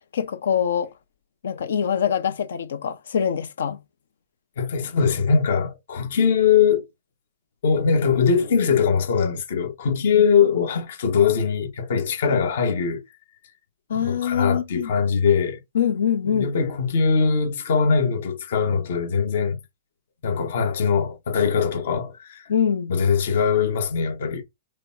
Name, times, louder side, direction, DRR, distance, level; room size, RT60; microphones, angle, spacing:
voice 1, 0.1-0.9 1.4-3.8 10.1-10.2 13.9-14.9 15.7-16.5 22.5-22.9, left 8 dB, 85° left, 0.8 m, -24 dB
voice 2, 4.6-6.9 7.6-13.0 13.9-15.6 16.2-19.6 20.2-22.5 22.9-24.4, left 6 dB, 65° left, 1.2 m, -21 dB
5.0 x 2.2 x 2.6 m
hypercardioid pair, 150°, 0 cm